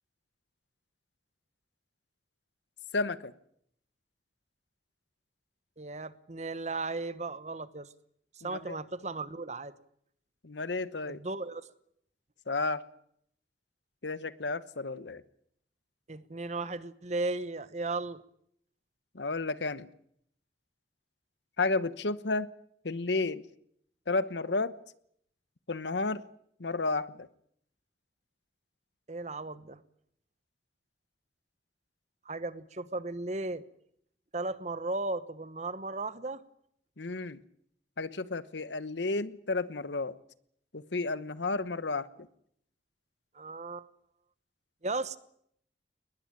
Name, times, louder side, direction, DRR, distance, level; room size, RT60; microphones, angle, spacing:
voice 1, 2.9-3.3 8.4-8.8 10.4-11.2 12.5-12.8 14.0-15.2 19.1-19.9 21.6-22.5 22.8-23.4 24.1-24.8 25.7-26.2 26.6-27.3 37.0-37.4 38.0-40.2 40.7-42.1, left 3 dB, 85° left, 15 dB, 1.1 m, -32 dB
voice 2, 5.8-7.9 8.4-9.7 11.1-11.7 16.1-18.2 29.1-29.8 32.2-33.7 34.3-36.4 43.3-43.9 44.8-45.2, right 3 dB, 40° right, 15 dB, 1.1 m, -36 dB
22.0 x 20.0 x 9.0 m, 0.69 s
head